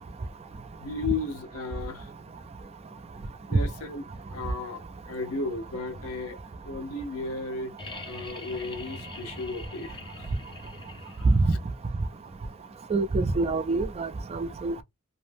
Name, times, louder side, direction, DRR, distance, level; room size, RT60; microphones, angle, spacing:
voice 1, 0.8-2.1 3.5-6.4 6.6-7.7 8.1-10.3 11.2-11.3, left 3 dB, 75° left, 0.8 m, -34 dB
sound 1, 7.8-11.6 13.3-13.4, left 2 dB, 20° left, 0.7 m, -42 dB
voice 2, 12.9-14.8, right 3 dB, 25° right, 0.3 m, -25 dB
2.6 x 2.1 x 3.3 m
head